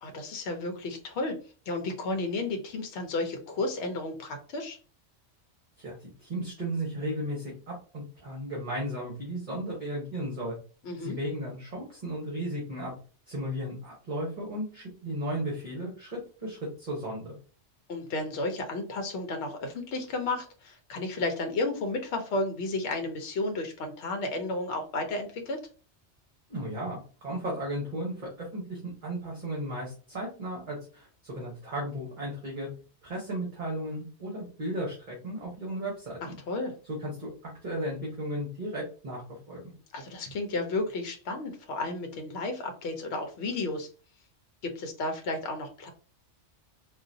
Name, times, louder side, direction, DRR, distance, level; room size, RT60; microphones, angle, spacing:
voice 1, 0.0-1.4 1.7-4.8 10.8-11.2 17.9-25.6 36.5-36.7 39.9-43.9 44.6-45.9, left 2 dB, 70° left, 5 dB, 0.9 m, -32 dB
voice 2, 5.8-10.6 11.0-12.9 13.3-17.3 26.5-32.7 33.0-36.3 36.9-39.6, right 1 dB, 45° right, -3 dB, 1.1 m, -35 dB
3.7 x 2.4 x 2.6 m, 0.37 s
omnidirectional pair, 1.2 m